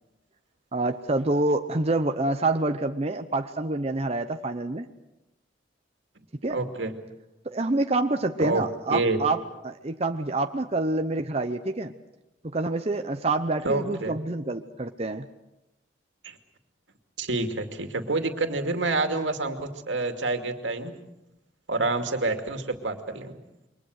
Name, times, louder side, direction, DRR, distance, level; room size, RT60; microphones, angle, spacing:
voice 1, 0.7-4.9 6.4-6.6 7.4-9.4 9.6-11.9 12.4-15.3, right 2 dB, 35° right, 6 dB, 0.8 m, -27 dB
voice 2, 6.5-6.9 8.4-8.6 8.9-9.2 13.6-14.2 16.2-16.4 17.2-21.0 21.7-23.4, right 2 dB, 80° right, 6 dB, 2.4 m, -28 dB
28.0 x 23.5 x 6.5 m, 0.92 s
head